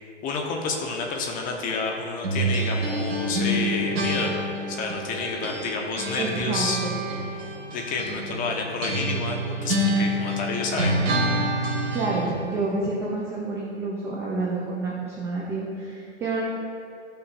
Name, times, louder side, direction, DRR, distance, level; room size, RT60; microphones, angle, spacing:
voice 1, 0.2-6.8 7.7-11.0, left 4 dB, 25° left, 1 dB, 1.0 m, -29 dB
sound 1, 2.2-5.7 6.0-12.4, right 1 dB, 55° right, 1.9 m, -27 dB
voice 2, 6.2-6.9 8.1-8.2 11.9-16.4, right 3 dB, 10° right, -5 dB, 0.3 m, -29 dB
14.0 x 5.8 x 2.5 m, 2.5 s
hypercardioid pair, 125°, 36 cm